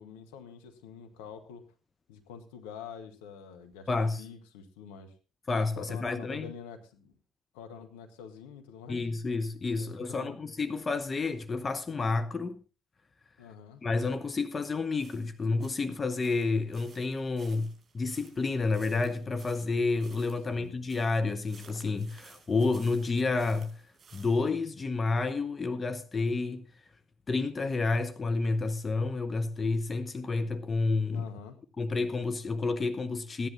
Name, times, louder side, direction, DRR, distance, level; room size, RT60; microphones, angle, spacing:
voice 1, 0.0-1.6 2.1-3.9 4.2-5.1 5.7-7.1 7.5-9.1 9.8-10.4 13.4-13.8 20.5-20.8 31.1-31.6, left 7 dB, 75° left, 1.6 m, -46 dB
voice 2, 3.9-4.2 5.5-6.5 8.9-12.6 13.8-23.8 24.1-26.7 27.3-31.2 31.8-33.5, left 3 dB, 30° left, 0.9 m, -30 dB
sound 1, 15.0-24.4, right 5 dB, 35° right, 5.7 m, -57 dB
15.0 x 10.5 x 4.1 m
figure-of-eight pair, 50°, 0 cm